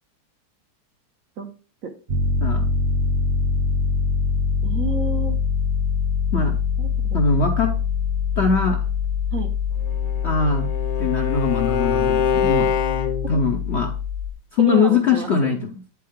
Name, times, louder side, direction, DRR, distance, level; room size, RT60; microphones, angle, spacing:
Piano, 2.1-14.3, left 5 dB, 40° right, 0.7 m, -24 dB
voice 1, 4.6-5.4 6.8-7.2 9.3-9.5 14.6-15.5, right 4 dB, 60° right, 5 dB, 1.0 m, -30 dB
voice 2, 7.1-7.7 8.4-8.8 10.2-10.7 11.0-12.8 13.3-13.9 14.5-15.7, left 4 dB, 60° left, 2 dB, 0.7 m, -21 dB
Bowed string instrument, 9.8-13.5, left 7 dB, 80° left, 1.3 m, -24 dB
8.4 x 4.7 x 3.5 m, 0.36 s
omnidirectional pair, 1.9 m